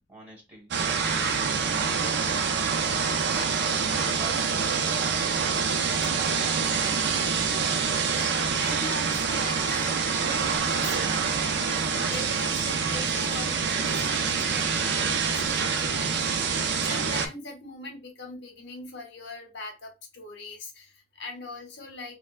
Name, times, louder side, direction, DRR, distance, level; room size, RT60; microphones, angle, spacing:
voice 1, 0.1-1.3 1.6-2.6 3.3-5.5, equal, 10° right, 1.5 m, -45 dB
sound 1, 0.7-17.3, right 5 dB, 55° right, 0.4 m, -26 dB
voice 2, 8.1-11.1 11.5-22.2, left 3 dB, 60° left, 1.0 m, -41 dB
4.1 x 2.0 x 2.5 m
head